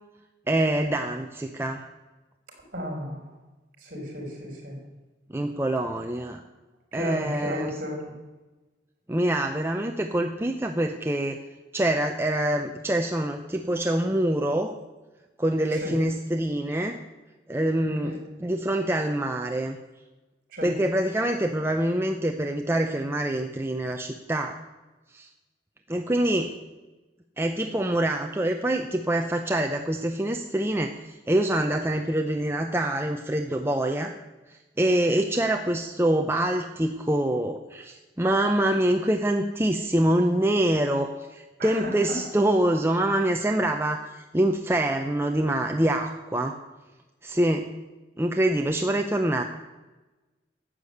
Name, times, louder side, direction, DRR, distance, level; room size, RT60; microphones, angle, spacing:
voice 1, 0.5-1.8 5.3-6.4 6.9-7.8 9.1-11.4 11.7-14.8 15.4-17.0 17.5-19.8 20.6-24.6 25.1-25.3 25.9-26.5 27.4-34.1 34.5-46.6 47.2-47.7 48.2-49.4, right 1 dB, 15° right, 4 dB, 0.7 m, -25 dB
voice 2, 2.7-3.2 3.8-4.7 6.9-8.1 15.8-15.9 18.0-18.2 20.5-20.7 41.6-41.9, equal, 50° right, 1 dB, 4.9 m, -33 dB
12.5 x 8.5 x 7.9 m, 1.1 s
head